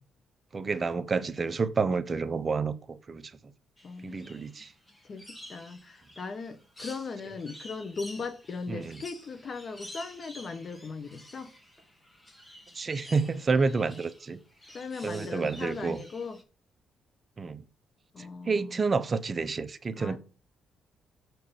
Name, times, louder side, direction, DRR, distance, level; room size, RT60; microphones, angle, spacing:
voice 1, 0.5-3.3 4.0-4.7 8.7-9.0 12.7-14.4 15.0-16.0 17.4-17.6 18.5-20.2, right 4 dB, 35° right, 0.8 m, -29 dB
voice 2, 3.8-4.5 5.1-11.5 14.7-16.4 18.1-18.8 20.0-20.2, left 4 dB, 45° left, 1.3 m, -38 dB
sound 1, 3.8-16.4, left 1 dB, 15° left, 2.3 m, -50 dB
7.3 x 4.6 x 7.0 m
cardioid pair, 90°, 0 cm